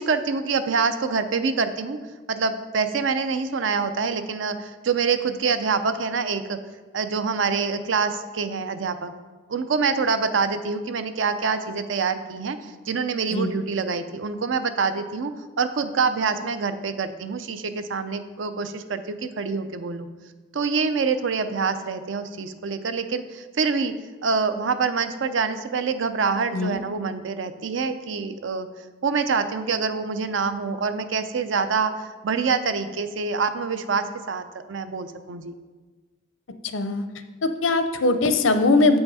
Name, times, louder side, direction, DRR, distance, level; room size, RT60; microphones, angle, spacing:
voice 1, 0.0-2.0 2.3-6.6 6.9-9.1 9.5-15.3 15.6-20.1 20.5-23.9 24.2-28.7 29.0-35.5, right 5 dB, 75° right, 10 dB, 0.5 m, -26 dB
voice 2, 36.7-37.1 37.4-39.0, left 3 dB, 85° left, 9 dB, 0.6 m, -21 dB
7.8 x 5.7 x 4.1 m, 1.3 s
head